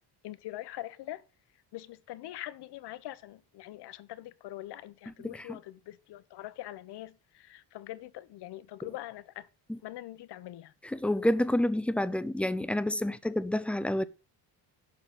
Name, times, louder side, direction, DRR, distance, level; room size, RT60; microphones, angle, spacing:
voice 1, 0.2-1.2 1.7-9.5 9.8-10.7, left 15 dB, 65° left, 0.9 m, -43 dB
voice 2, 10.9-14.1, left 1 dB, 5° left, 0.4 m, -28 dB
11.5 x 4.0 x 7.1 m
cardioid pair, 130°, 44 cm